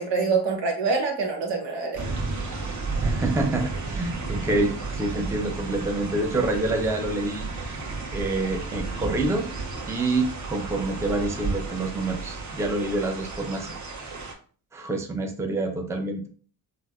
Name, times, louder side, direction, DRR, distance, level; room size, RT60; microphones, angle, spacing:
voice 1, 0.0-2.0, right 4 dB, 80° right, 1 dB, 1.1 m, -25 dB
Rain Sound and Rainforest, 1.9-14.3, right 3 dB, 45° right, 1.0 m, -32 dB
voice 2, 3.0-7.5 8.1-9.5 9.9-13.8 14.7-16.3, right 2 dB, 5° right, 4 dB, 0.5 m, -27 dB
4.1 x 2.0 x 2.4 m, 0.41 s
cardioid pair, 70°, 41 cm